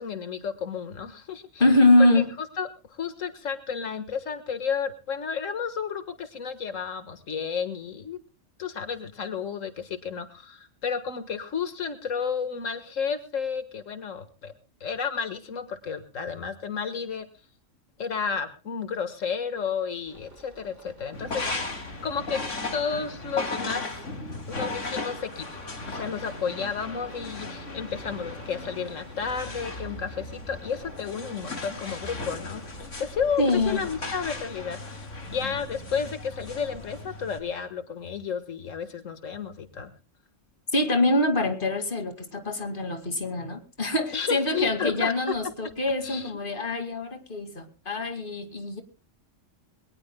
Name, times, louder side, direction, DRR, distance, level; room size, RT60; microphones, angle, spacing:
voice 1, 0.0-1.6 2.1-2.2 2.6-8.2 8.6-14.5 14.8-17.3 18.0-22.4 22.7-24.1 24.5-25.6 25.9-39.9 44.1-45.3 46.0-46.3, left 6 dB, 90° left, 10 dB, 1.9 m, -32 dB
voice 2, 1.6-2.3 33.4-33.8 40.7-48.8, left 2 dB, 40° left, 7 dB, 2.5 m, -24 dB
sound 1, 20.0-34.2, right 1 dB, 65° right, 5.5 m, -52 dB
sound 2, 21.1-37.4, left 2 dB, 70° left, 2.9 m, -36 dB
22.5 x 19.0 x 2.2 m, 0.33 s
omnidirectional pair, 1.3 m